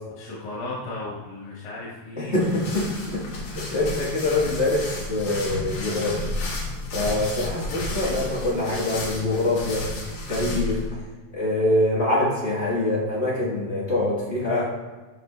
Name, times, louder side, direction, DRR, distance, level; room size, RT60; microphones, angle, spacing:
voice 1, 0.2-2.5, left 2 dB, 90° left, -6 dB, 2.8 m, -35 dB
voice 2, 2.2-6.2 6.9-9.8 10.3-11.0 11.3-14.7, left 2 dB, 30° left, -6 dB, 1.4 m, -24 dB
sound 1, 2.3-10.9, left 1 dB, 65° left, 2.8 m, -32 dB
11.5 x 4.7 x 2.4 m, 1.3 s
omnidirectional pair, 3.4 m